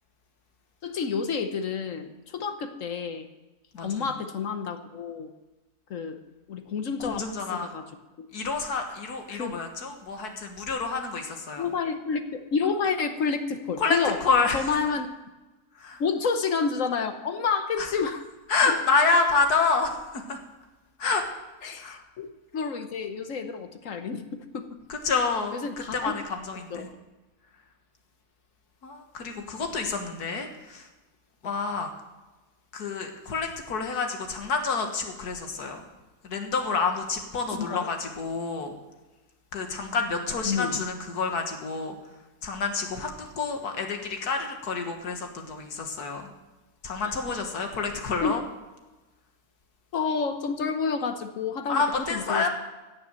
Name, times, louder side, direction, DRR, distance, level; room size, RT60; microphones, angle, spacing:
voice 1, 0.8-3.3 3.8-5.3 5.9-6.2 6.5-7.9 8.2-8.3 9.3-9.6 11.6-14.2 14.5-15.1 16.0-18.2 18.7-18.8 21.6-24.8 25.5-26.1 26.7-27.0 37.5-37.9 40.4-40.8 48.2-48.4 49.9-52.5, left 5 dB, 60° left, 8 dB, 1.3 m, -29 dB
voice 2, 3.7-4.1 7.0-7.7 8.3-11.7 13.8-14.7 15.8-16.0 17.8-17.9 18.5-20.4 21.0-21.2 21.8-22.0 24.9-25.6 25.9-26.9 28.8-30.9 31.4-31.9 32.7-35.8 36.2-38.7 39.5-42.0 42.4-46.3 46.8-48.4 51.7-52.5, left 4 dB, 75° left, 4 dB, 2.1 m, -28 dB
16.5 x 6.9 x 7.5 m, 1.1 s
omnidirectional pair, 1.7 m